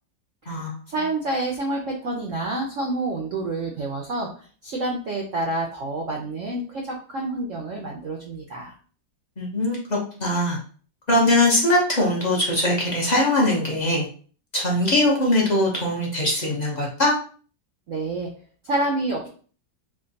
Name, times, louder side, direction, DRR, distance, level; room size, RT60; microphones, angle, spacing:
voice 1, 0.4-8.7 17.9-18.3 18.6-19.3, right 2 dB, 70° right, 0 dB, 0.7 m, -28 dB
voice 2, 9.4-10.6 11.1-14.1 14.5-17.2, left 1 dB, 40° left, -3 dB, 0.6 m, -21 dB
3.5 x 2.2 x 3.9 m, 0.42 s
omnidirectional pair, 2.0 m